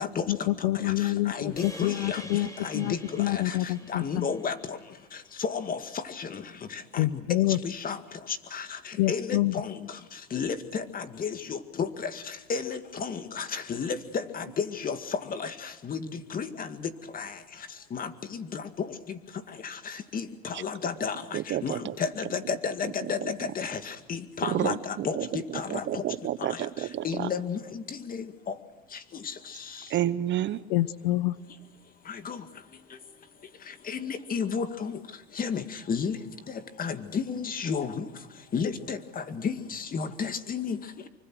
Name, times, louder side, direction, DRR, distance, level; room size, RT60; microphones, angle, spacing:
voice 1, 0.3-4.3 7.0-7.6 9.0-9.6 30.7-31.3, left 17 dB, 70° left, 18 dB, 1.0 m, -27 dB
voice 2, 0.8-2.2 2.6-3.6 3.9-4.8 5.4-6.4 6.7-7.2 7.6-8.0 8.3-9.8 10.3-17.3 17.9-18.9 19.6-26.0 26.4-26.6 27.0-28.5 29.2-29.3 32.1-32.4 33.9-35.0 35.4-36.2 36.8-38.0 38.5-40.8, left 6 dB, 30° left, 10 dB, 2.1 m, -32 dB
sound 1, 1.6-6.0, left 1 dB, 10° left, 4.5 m, -46 dB
voice 3, 21.3-21.9 23.2-23.3 24.5-24.8 25.1-25.3 25.7-27.3 29.9-30.6, right 12 dB, 35° right, 15 dB, 0.9 m, -29 dB
25.5 x 24.5 x 6.2 m, 1.1 s
supercardioid pair, 115°, 31 cm